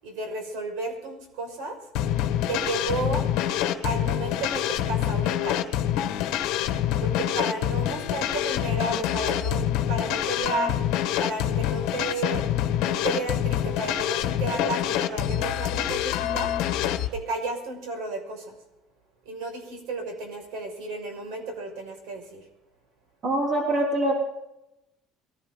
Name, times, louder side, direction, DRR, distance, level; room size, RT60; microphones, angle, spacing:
voice 1, 0.0-1.8 2.5-3.3 3.8-5.6 7.0-10.7 11.2-12.4 12.8-16.5 17.1-18.5 19.2-22.4, right 3 dB, 75° right, 4 dB, 5.9 m, -33 dB
sound 1, 1.9-17.1, left 11 dB, 65° left, 1.5 m, -26 dB
voice 2, 23.2-24.1, right 1 dB, 25° right, -1 dB, 3.6 m, -24 dB
22.0 x 15.5 x 4.0 m, 0.89 s
cardioid pair, 180°, 0 cm